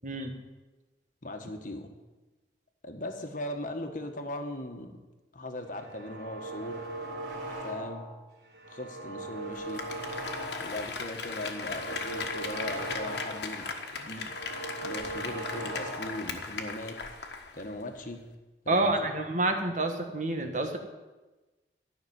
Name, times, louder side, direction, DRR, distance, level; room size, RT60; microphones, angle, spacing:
voice 1, 0.0-0.3 18.7-20.8, right 2 dB, 45° right, 5 dB, 1.5 m, -28 dB
voice 2, 1.2-1.9 2.8-4.9 5.3-6.8 7.6-8.0 8.7-9.8 10.6-13.7 14.0-14.3 14.8-17.0 17.5-18.2 18.6-18.9, left 1 dB, 45° left, 5 dB, 1.5 m, -39 dB
sound 1, 5.7-8.1 8.5-10.8 11.2-13.6 13.9-16.3, right 2 dB, 75° right, 3.7 m, -39 dB
Applause, 9.5-17.7 18.0-18.1, left 4 dB, 70° left, 1.4 m, -38 dB
13.0 x 5.9 x 9.4 m, 1.2 s
head